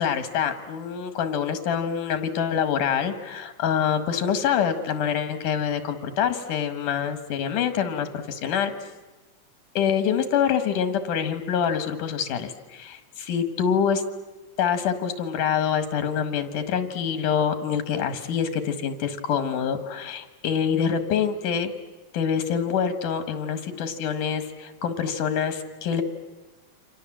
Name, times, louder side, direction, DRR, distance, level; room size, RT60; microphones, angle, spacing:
voice 1, 0.0-8.7 9.7-14.0 14.6-21.7 22.1-26.0, left 7 dB, 90° left, 9 dB, 3.2 m, -26 dB
29.5 x 25.5 x 7.6 m, 1.2 s
omnidirectional pair, 3.6 m